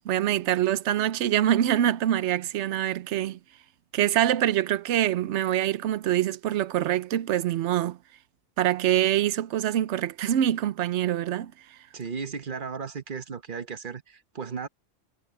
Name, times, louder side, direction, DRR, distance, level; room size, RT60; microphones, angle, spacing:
voice 1, 0.1-3.4 3.9-8.0 8.6-11.5, right 11 dB, 75° right, 1.0 m, -25 dB
voice 2, 11.9-14.7, right 5 dB, 45° right, 1.1 m, -35 dB
omnidirectional pair, 1.2 m